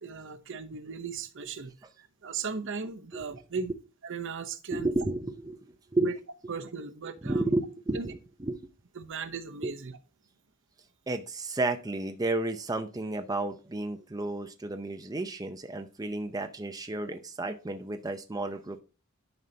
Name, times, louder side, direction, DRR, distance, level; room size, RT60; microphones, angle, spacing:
voice 1, 0.0-1.7 2.0-3.7 4.0-4.9 6.0-6.2 6.5-7.4 7.9-8.1 9.0-9.9, right 5 dB, 60° right, 0.8 m, -37 dB
voice 2, 4.7-6.1 7.2-8.7 9.6-9.7 11.1-18.8, right 2 dB, 15° right, 0.6 m, -32 dB
11.0 x 5.5 x 2.8 m
head